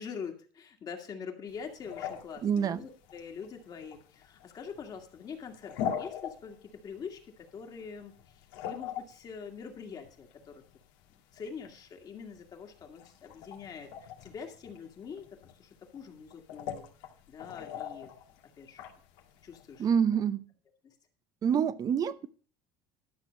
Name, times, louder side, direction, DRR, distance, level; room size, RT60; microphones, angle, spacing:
voice 1, 0.0-10.6 11.3-16.8 17.3-18.1 18.6-18.8 19.4-19.9 20.8-20.9, left 6 dB, 35° left, 2.1 m, -44 dB
sound 1, 1.5-19.9, left 9 dB, 75° left, 2.0 m, -43 dB
voice 2, 2.4-2.8 19.8-20.4 21.4-22.3, right 7 dB, 35° right, 0.7 m, -27 dB
12.0 x 6.7 x 5.2 m
cardioid pair, 125°, 11 cm